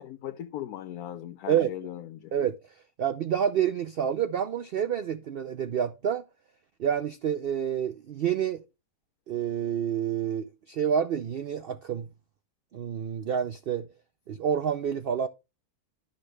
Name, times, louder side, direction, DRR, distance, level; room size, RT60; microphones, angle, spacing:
voice 1, 0.0-2.3, left 12 dB, 75° left, 1.1 m, -38 dB
voice 2, 3.0-6.2 6.8-8.6 9.3-12.1 12.7-13.9 14.3-15.3, right 8 dB, 85° right, 0.5 m, -28 dB
12.0 x 5.7 x 3.2 m
omnidirectional pair, 1.6 m